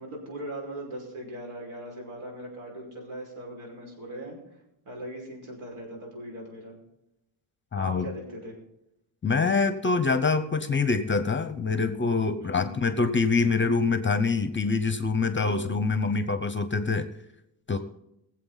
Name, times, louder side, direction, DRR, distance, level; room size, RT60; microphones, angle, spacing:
voice 1, 0.0-4.4 4.8-6.7 7.7-8.6 12.4-12.7 15.4-15.7, right 1 dB, 80° right, 0 dB, 5.7 m, -39 dB
voice 2, 7.7-8.1 9.2-17.1 17.7-17.8, left 4 dB, 25° left, 10 dB, 0.8 m, -25 dB
22.0 x 7.8 x 4.1 m, 0.84 s
wide cardioid pair, 140°, 48 cm